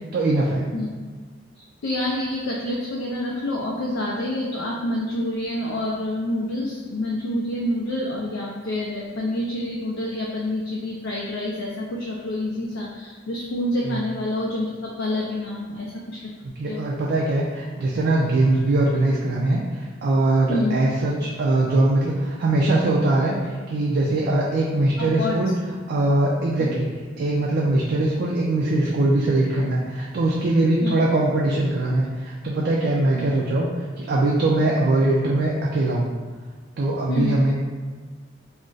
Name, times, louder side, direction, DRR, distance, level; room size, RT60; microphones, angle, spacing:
voice 1, 0.1-0.7 13.8-14.0 16.4-25.5 25.9-26.9 27.2-33.7 34.0-36.1 36.8-37.5, right 2 dB, 55° right, -3 dB, 0.3 m, -21 dB
voice 2, 1.5-16.3 16.7-16.9 20.5-20.8 25.0-25.4 30.8-31.0 37.1-37.4, left 1 dB, 80° left, -3 dB, 0.4 m, -27 dB
2.4 x 2.0 x 3.8 m, 1.5 s
head